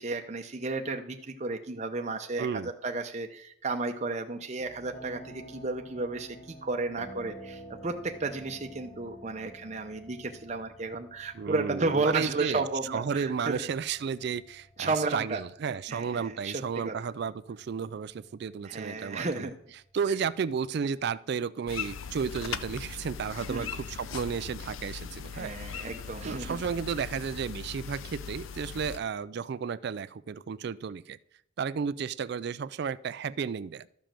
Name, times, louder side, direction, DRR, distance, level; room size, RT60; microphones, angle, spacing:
voice 1, 0.0-13.6 14.8-15.4 15.9-16.9 18.6-19.5 23.5-23.7 25.3-26.6, right 3 dB, 30° right, 4 dB, 0.7 m, -33 dB
voice 2, 2.4-2.7 11.3-19.5 19.9-25.5 26.2-31.2 31.6-33.9, right 6 dB, 50° right, 17 dB, 0.3 m, -33 dB
sound 1, 4.6-21.1, right 1 dB, 30° left, 1.3 m, -51 dB
sound 2, 21.7-29.0, left 6 dB, 70° left, 0.6 m, -39 dB
12.5 x 5.1 x 7.4 m, 0.68 s
head